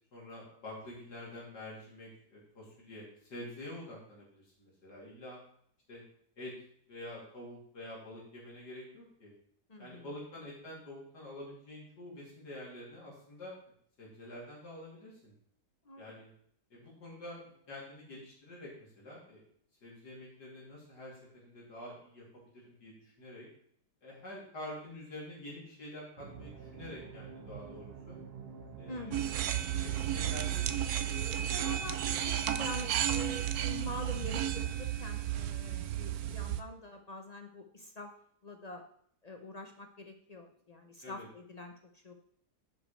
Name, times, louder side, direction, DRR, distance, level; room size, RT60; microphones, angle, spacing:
voice 1, 0.1-5.4 5.9-6.0 6.4-6.5 6.9-9.3 9.8-13.6 14.0-15.3 16.0-16.3 16.7-19.4 19.8-22.2 22.6-23.5 24.0-28.2 28.8-29.4 29.7-31.1 41.0-41.2, left 1 dB, 80° left, -5 dB, 3.5 m, -47 dB
voice 2, 9.7-10.1 15.9-16.0 28.9-29.3 31.1-38.1 38.4-38.9 39.2-42.1, left 1 dB, 50° left, 4 dB, 0.4 m, -45 dB
sound 1, 26.2-34.8, right 5 dB, 45° right, 0.9 m, -49 dB
sound 2, 29.1-36.6, right 11 dB, 70° right, 1.1 m, -33 dB
10.5 x 5.1 x 4.3 m, 0.65 s
omnidirectional pair, 1.8 m